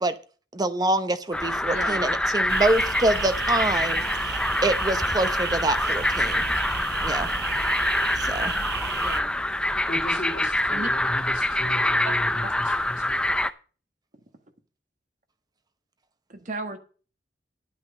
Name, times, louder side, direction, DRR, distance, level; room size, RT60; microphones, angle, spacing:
voice 1, 0.5-4.0 4.6-6.5 6.8-7.3 8.2-8.5, right 2 dB, 20° right, 0.8 m, -26 dB
sound 1, 1.3-13.5, left 1 dB, 5° left, 0.4 m, -25 dB
voice 2, 1.7-2.2 8.9-9.4 10.7-10.9 12.4-12.5 16.3-16.8, right 2 dB, 45° right, 1.5 m, -35 dB
sound 2, 2.5-9.2, right 6 dB, 65° right, 1.0 m, -33 dB
voice 3, 9.9-13.2, left 1 dB, 45° left, 3.0 m, -36 dB
9.5 x 9.0 x 5.4 m
head